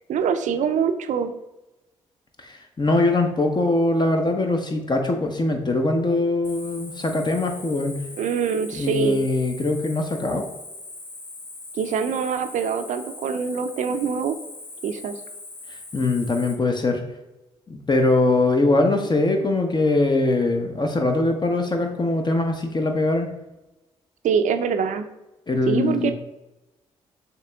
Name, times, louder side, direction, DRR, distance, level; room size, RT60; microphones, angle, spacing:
voice 1, 0.1-1.3 8.2-9.2 11.8-14.4 14.8-15.1 24.2-25.0 25.7-26.1, right 6 dB, 55° right, 8 dB, 0.4 m, -24 dB
voice 2, 2.4-8.0 8.7-10.4 15.9-17.0 17.7-23.3 25.5-26.1, left 2 dB, 30° left, 4 dB, 0.8 m, -22 dB
Cricket, 6.4-16.5, left 2 dB, 65° left, 1.1 m, -41 dB
6.6 x 2.9 x 2.3 m, 0.99 s
hypercardioid pair, 40°, 15 cm